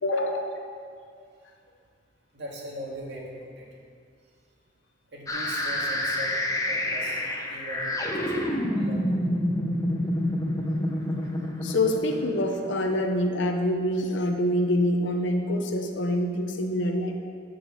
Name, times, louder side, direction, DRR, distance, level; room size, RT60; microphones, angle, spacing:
voice 1, 0.0-0.5 11.6-17.2, left 1 dB, 70° left, 3 dB, 0.8 m, -26 dB
voice 2, 2.3-3.7 5.1-6.3 6.7-8.3 8.7-9.2, right 1 dB, 60° right, -2 dB, 2.1 m, -40 dB
sound 1, 5.3-13.2, left 1 dB, 15° left, 0.9 m, -28 dB
13.0 x 5.1 x 6.3 m, 2.2 s
head